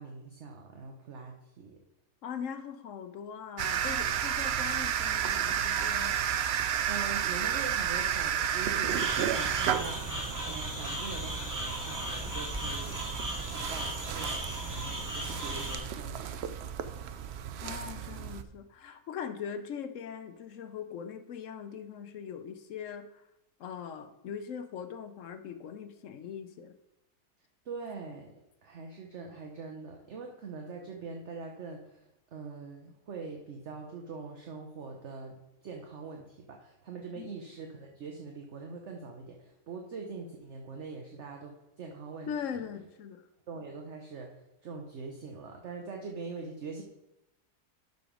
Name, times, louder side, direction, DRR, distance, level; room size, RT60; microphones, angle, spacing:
voice 1, 0.0-1.8 6.9-13.0 13.4-16.7 27.6-28.3 28.6-35.4 35.6-42.7 43.5-46.8, right 4 dB, 55° right, 2 dB, 1.1 m, -43 dB
voice 2, 2.2-6.2 17.6-23.2 23.6-26.8 37.2-37.3 42.3-43.3, left 7 dB, 65° left, 10 dB, 0.9 m, -41 dB
sound 1, 3.6-18.4, right 9 dB, 75° right, 0.6 m, -32 dB
sound 2, 8.9-15.8, right 1 dB, 10° right, 1.6 m, -37 dB
11.5 x 4.1 x 5.0 m, 0.88 s
omnidirectional pair, 1.6 m